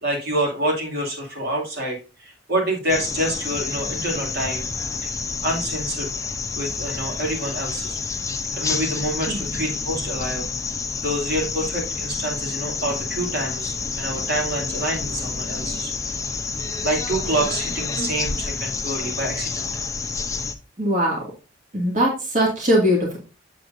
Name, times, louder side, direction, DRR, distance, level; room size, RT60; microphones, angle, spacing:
voice 1, 0.0-4.7 5.0-5.1 5.4-6.1 6.6-8.0 8.5-10.5 11.0-15.9 16.8-19.7, right 1 dB, 55° right, -1 dB, 2.4 m, -27 dB
sound 1, 2.9-20.5, left 4 dB, 15° left, 0.6 m, -29 dB
voice 2, 9.3-9.6 20.8-21.2 21.7-23.2, equal, 40° right, -2 dB, 2.2 m, -21 dB
7.5 x 7.4 x 2.6 m, 0.32 s
head